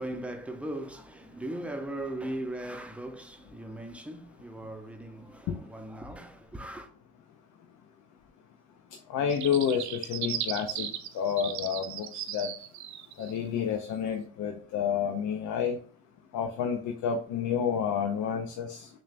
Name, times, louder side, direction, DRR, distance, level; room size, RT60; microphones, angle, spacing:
voice 1, 0.0-6.9, right 1 dB, 5° right, 0.6 m, -38 dB
voice 2, 9.1-10.9 11.1-12.5 13.2-15.8 16.3-18.9, left 7 dB, 80° left, 0.6 m, -29 dB
sound 1, 9.3-13.4, right 11 dB, 70° right, 0.5 m, -36 dB
6.3 x 2.2 x 2.5 m
cardioid pair, 90°, 30 cm